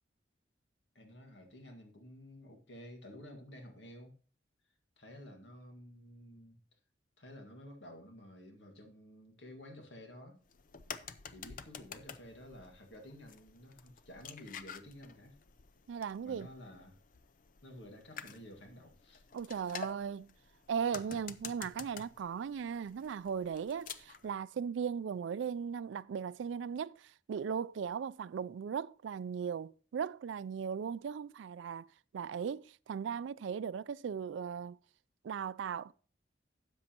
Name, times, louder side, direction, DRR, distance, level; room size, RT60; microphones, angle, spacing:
voice 1, 1.0-4.2 5.0-6.6 7.2-10.4 11.3-15.4 16.2-17.0 17.6-19.2 20.9-21.1, left 1 dB, 80° left, 1.8 m, -52 dB
sound 1, 10.5-24.3, left 6 dB, 45° left, 0.5 m, -50 dB
voice 2, 15.9-16.5 19.3-20.3 20.7-31.9 32.1-34.8 35.2-35.9, right 7 dB, 90° right, 0.3 m, -38 dB
13.0 x 8.2 x 2.9 m
head